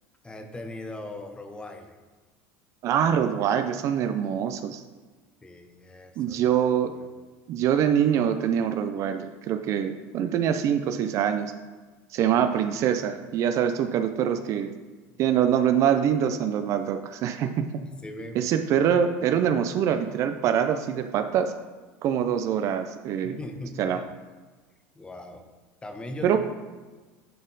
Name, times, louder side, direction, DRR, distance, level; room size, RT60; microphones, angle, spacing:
voice 1, 0.2-2.0 5.4-6.7 12.3-12.4 17.9-18.5 18.9-19.0 23.2-24.1 24.9-25.4 25.8-26.4, left 1 dB, 15° left, 6 dB, 0.9 m, -40 dB
voice 2, 2.8-4.8 6.2-6.9 7.5-11.5 12.1-14.7 15.2-17.6 18.3-21.5 22.0-23.4 23.8-24.0 26.2-26.4, right 9 dB, 55° right, 8 dB, 0.5 m, -24 dB
10.0 x 4.1 x 4.0 m, 1.3 s
supercardioid pair, 110°, 6 cm